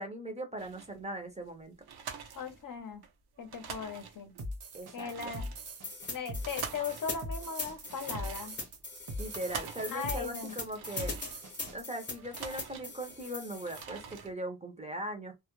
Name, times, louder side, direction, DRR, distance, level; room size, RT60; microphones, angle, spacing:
voice 1, 0.0-1.7 4.7-5.3 9.2-11.2 11.7-15.4, right 1 dB, 20° right, 0.5 m, -39 dB
sound 1, 0.6-1.0 1.4-1.5 1.8-3.1 3.4-4.4 4.8-11.7 12.0-13.2 13.5-14.3, right 6 dB, 90° right, 0.7 m, -46 dB
voice 2, 2.4-3.0 3.4-4.3 4.9-5.5 6.1-8.6 9.9-10.6, left 6 dB, 60° left, 0.7 m, -38 dB
sound 2, 4.4-11.8, equal, 55° right, 0.8 m, -42 dB
sound 3, 5.8-13.8, left 3 dB, 30° left, 0.8 m, -41 dB
2.2 x 2.0 x 2.9 m
wide cardioid pair, 140°, 38 cm